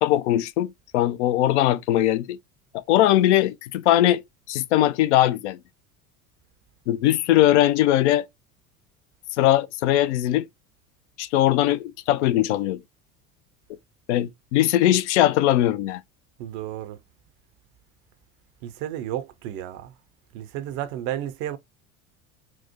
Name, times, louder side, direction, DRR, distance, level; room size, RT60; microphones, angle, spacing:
voice 1, 0.0-2.4 2.7-5.6 6.9-8.3 9.4-10.5 11.2-12.8 14.1-16.0, left 13 dB, 60° left, 0.5 m, -20 dB
voice 2, 16.4-17.0 18.6-19.9 20.3-21.6, right 12 dB, 45° right, 0.5 m, -32 dB
4.4 x 2.0 x 2.7 m
figure-of-eight pair, 70°, 41 cm